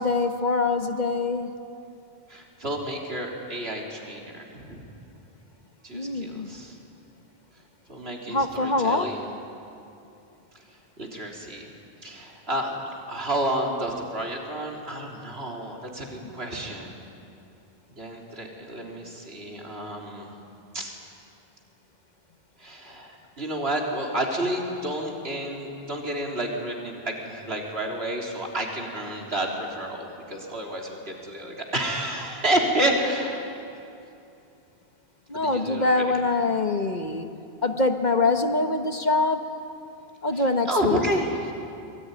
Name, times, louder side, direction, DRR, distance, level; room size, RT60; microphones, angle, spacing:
voice 1, 0.0-1.5 5.9-6.5 8.3-9.1 35.3-37.3 37.6-39.4 40.2-41.0, left 3 dB, 45° left, 6 dB, 1.4 m, -24 dB
voice 2, 2.3-4.8 5.8-6.8 7.9-9.3 11.0-11.7 12.0-16.9 18.0-20.3 20.7-20.9 22.6-33.6 35.3-36.0 40.3-41.5, right 1 dB, 70° right, 0 dB, 3.9 m, -30 dB
24.5 x 22.0 x 9.9 m, 2.7 s
omnidirectional pair, 1.1 m